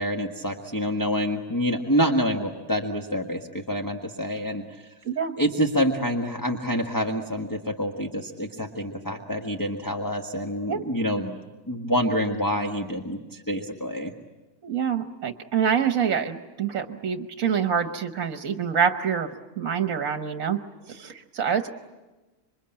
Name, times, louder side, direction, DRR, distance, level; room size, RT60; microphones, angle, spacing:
voice 1, 0.0-4.9 5.4-11.4 11.7-14.1, equal, 15° left, 2 dB, 1.4 m, -27 dB
voice 2, 14.6-19.3 19.6-20.6 20.9-21.7, right 7 dB, 65° right, 7 dB, 1.5 m, -26 dB
27.5 x 24.0 x 8.8 m, 1.2 s
omnidirectional pair, 1.5 m